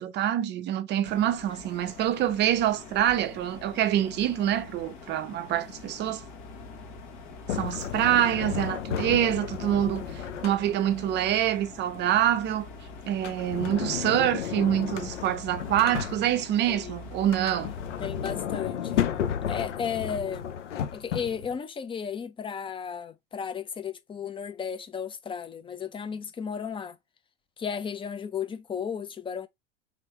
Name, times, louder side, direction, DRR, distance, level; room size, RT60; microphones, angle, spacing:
voice 1, 0.0-6.2 7.5-12.7 13.1-17.7, right 11 dB, 30° right, 0.5 m, -26 dB
sound 1, 1.0-18.3, left 4 dB, 50° left, 1.4 m, -45 dB
Sliding door, 7.5-11.0 13.1-16.6 17.2-21.6, left 9 dB, 85° left, 0.7 m, -33 dB
voice 2, 16.7-17.0 18.0-19.2 19.5-20.5 20.9-27.0 27.6-29.5, left 7 dB, 15° left, 0.5 m, -34 dB
3.9 x 3.1 x 3.1 m
hypercardioid pair, 100°, 35 cm